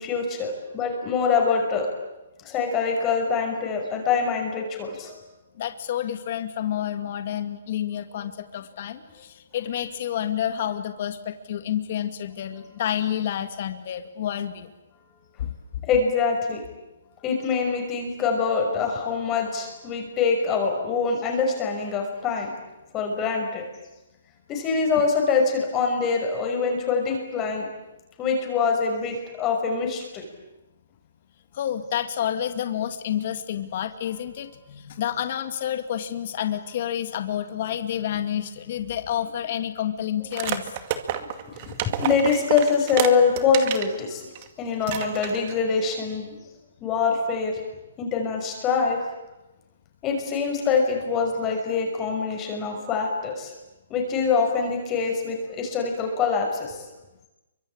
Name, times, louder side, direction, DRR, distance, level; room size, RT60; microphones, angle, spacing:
voice 1, 0.0-1.9 2.4-5.2 15.8-16.6 17.2-22.5 22.9-23.7 24.5-27.7 28.2-30.3 41.2-44.3 44.6-46.3 46.8-47.6 48.0-49.0 50.0-53.5 53.9-56.8, left 5 dB, 20° left, 2 dB, 5.8 m, -24 dB
voice 2, 5.6-14.7 15.4-15.5 31.5-40.7, left 10 dB, 50° left, 9 dB, 2.1 m, -29 dB
sound 1, 40.3-43.9 44.4-44.5 44.8-45.6, right 11 dB, 35° right, 2.3 m, -30 dB
28.0 x 24.5 x 8.8 m, 1.0 s
hypercardioid pair, 160°, 0 cm